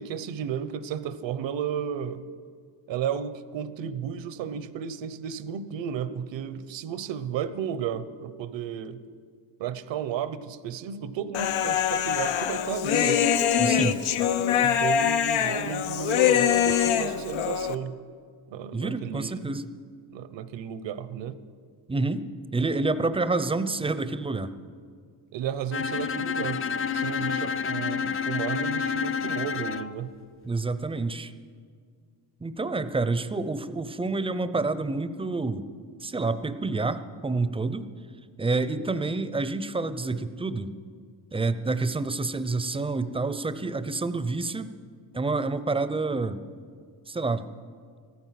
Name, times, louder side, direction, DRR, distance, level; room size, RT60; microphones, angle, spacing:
voice 1, 0.0-2.2 2.9-9.0 9.6-13.2 14.6-18.0 18.5-19.5 20.1-21.4 25.3-26.6 26.9-30.1, right 8 dB, 65° right, 14 dB, 1.0 m, -33 dB
Human voice, 11.3-17.8, left 9 dB, 80° left, 0.9 m, -24 dB
voice 2, 13.6-14.0 18.7-19.7 21.9-22.3 22.5-24.5 30.4-31.3 32.4-35.7 36.0-37.9 38.4-40.7 41.3-44.7 45.1-46.4 47.1-47.4, right 3 dB, 10° right, 12 dB, 0.6 m, -28 dB
Bowed string instrument, 25.7-29.9, left 7 dB, 30° left, 0.5 m, -29 dB
15.5 x 14.0 x 5.9 m, 2.1 s
cardioid pair, 100°, 48 cm